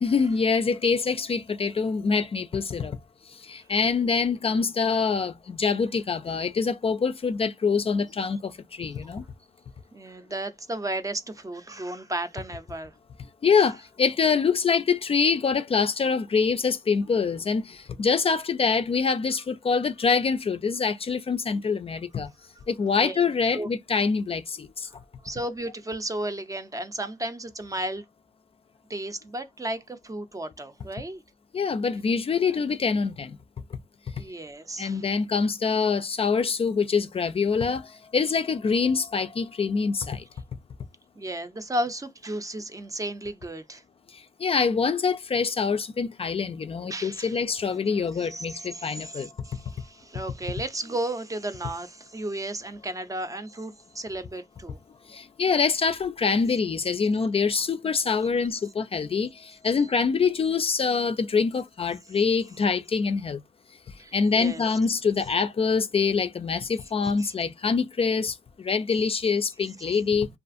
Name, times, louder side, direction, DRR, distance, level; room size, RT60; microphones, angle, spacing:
voice 1, 0.0-3.0 3.4-9.2 13.4-22.3 22.7-24.9 31.5-33.4 34.8-40.2 44.4-49.3 55.1-63.4 64.1-70.3, left 5 dB, 40° left, 0.3 m, -25 dB
voice 2, 9.9-12.9 13.6-13.7 23.0-23.2 23.5-23.7 25.2-28.0 28.9-31.2 34.2-35.0 41.2-43.8 46.9-47.4 48.1-54.8 64.0-64.8 67.2-67.3 69.8-70.0, right 1 dB, 25° right, 0.5 m, -34 dB
2.4 x 2.4 x 2.5 m
cardioid pair, 65°, 14 cm